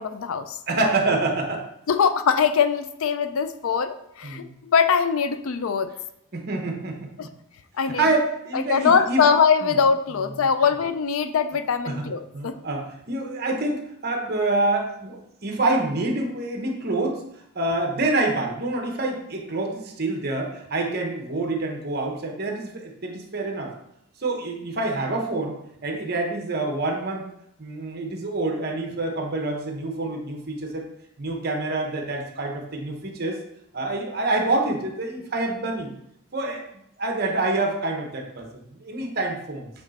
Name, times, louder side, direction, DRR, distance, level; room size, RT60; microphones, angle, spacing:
voice 1, 0.0-0.6 1.9-5.9 7.2-7.3 7.8-8.1 8.5-12.6, left 6 dB, 70° left, 10 dB, 0.4 m, -22 dB
voice 2, 0.7-1.7 4.2-4.5 6.3-7.3 8.0-9.2 9.6-9.7 11.9-12.1 12.3-17.2 17.5-23.7 24.2-27.3 27.6-30.9 31.2-33.4 33.7-35.9 36.3-36.6 37.0-39.7, right 2 dB, 45° right, 2 dB, 1.0 m, -27 dB
8.2 x 3.1 x 4.1 m, 0.78 s
head